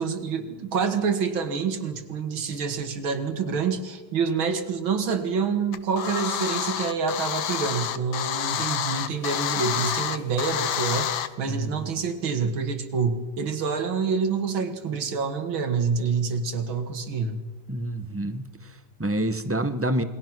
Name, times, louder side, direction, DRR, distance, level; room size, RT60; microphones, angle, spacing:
voice 1, 0.0-17.4, right 5 dB, 80° right, 2.6 m, -27 dB
sound 1, 5.7-11.3, left 10 dB, 75° left, 1.7 m, -28 dB
voice 2, 11.5-12.0 17.7-20.0, right 1 dB, 15° right, 0.5 m, -28 dB
28.0 x 21.5 x 6.1 m
omnidirectional pair, 2.2 m